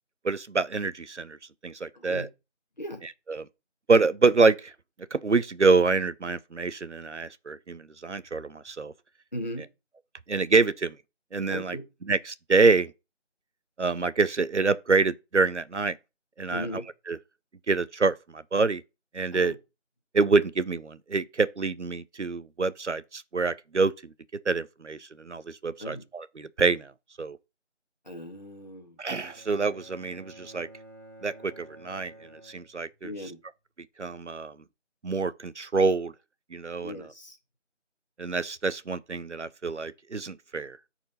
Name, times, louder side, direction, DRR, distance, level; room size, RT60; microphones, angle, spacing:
voice 1, 0.2-1.4 1.6-2.3 3.3-3.4 3.9-4.7 5.1-8.9 10.3-10.9 11.3-11.8 12.1-12.9 13.8-15.9 16.4-16.8 17.1-17.2 17.7-18.8 19.1-19.5 20.1-23.9 24.5-26.9 27.2-27.4 29.0-30.7 31.2-32.1 32.4-33.1 34.0-34.5 35.0-36.1 36.5-36.9 38.2-40.8, right 4 dB, 70° right, 0.7 m, -26 dB
voice 2, 1.9-2.3 2.8-3.0 9.3-9.7 11.5-11.8 16.5-16.8 19.3-19.6 25.8-26.0 28.1-29.0 33.0-33.4 36.8-37.4, equal, 35° left, 1.7 m, -37 dB
Bowed string instrument, 29.2-33.3, right 1 dB, 30° right, 2.6 m, -51 dB
9.4 x 4.4 x 4.1 m
figure-of-eight pair, 170°, 36 cm